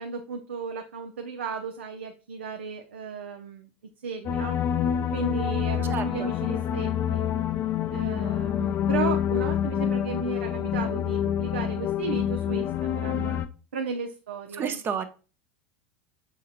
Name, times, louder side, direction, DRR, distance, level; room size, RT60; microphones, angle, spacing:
voice 1, 0.0-3.7 4.0-4.6 5.1-7.3 7.9-13.4 13.7-14.8, right 5 dB, 80° right, 3 dB, 0.5 m, -34 dB
sound 1, 4.3-13.5, left 9 dB, 35° left, 0.4 m, -27 dB
voice 2, 5.9-6.4 14.5-15.0, right 7 dB, 30° right, 8 dB, 0.7 m, -31 dB
6.5 x 2.8 x 2.4 m, 0.34 s
figure-of-eight pair, 85°, 7 cm